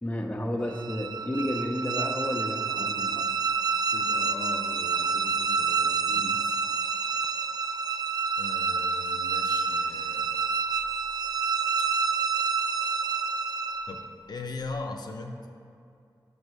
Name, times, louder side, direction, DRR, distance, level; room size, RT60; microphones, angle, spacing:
voice 1, 0.0-3.3 6.1-6.4, left 1 dB, 15° left, 2 dB, 0.6 m, -32 dB
sound 1, 0.7-14.1, right 5 dB, 60° right, 0.4 m, -28 dB
voice 2, 3.9-6.0 6.4-6.5 6.8-6.9 8.4-10.3 13.9-14.0 14.3-15.5, left 3 dB, 60° left, 3 dB, 0.5 m, -39 dB
5.3 x 5.3 x 6.3 m, 2.5 s
wide cardioid pair, 85°, 8 cm